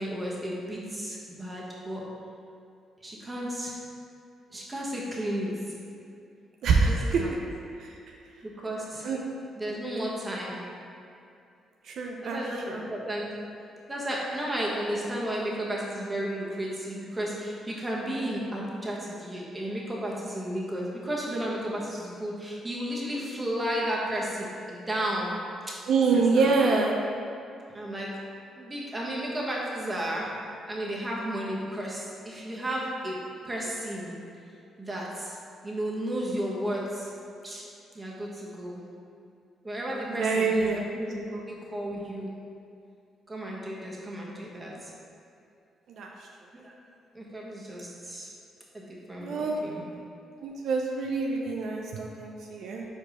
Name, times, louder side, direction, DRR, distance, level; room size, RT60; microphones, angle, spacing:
voice 1, 0.0-2.0 3.0-3.8 4.5-5.5 6.8-7.3 8.4-9.1 9.6-10.6 12.2-13.2 13.9-25.4 25.7-25.8 26.1-26.7 27.7-28.2 28.5-30.3 30.7-33.2 33.4-34.1 34.8-35.4 35.6-37.1 37.4-37.6 37.9-38.8 39.6-42.3 43.3-44.9 46.5-46.7 47.1-48.3 48.7-49.8, equal, 20° right, -4 dB, 1.4 m, -33 dB
voice 2, 6.6-7.2 7.8-7.9 9.0-9.2 11.8-12.4 12.7-12.8 25.9-26.9 40.1-40.8 41.3-41.4 45.9-46.1 49.2-49.6 50.4-52.9, right 4 dB, 70° right, 0 dB, 0.5 m, -26 dB
4.8 x 4.4 x 5.1 m, 2.6 s
cardioid pair, 90°, 0 cm